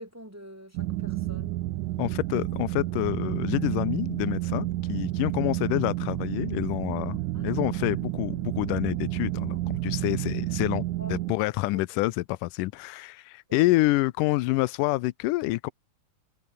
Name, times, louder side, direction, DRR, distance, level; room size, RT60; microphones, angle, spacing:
voice 1, 0.0-1.6 7.3-7.6 11.0-11.2 11.7-11.8 13.5-13.7, equal, 10° right, 0.6 m, -45 dB
sound 1, 0.8-11.3, right 17 dB, 75° right, 2.3 m, -30 dB
voice 2, 2.0-15.7, left 19 dB, 85° left, 2.2 m, -27 dB
omnidirectional pair, 3.8 m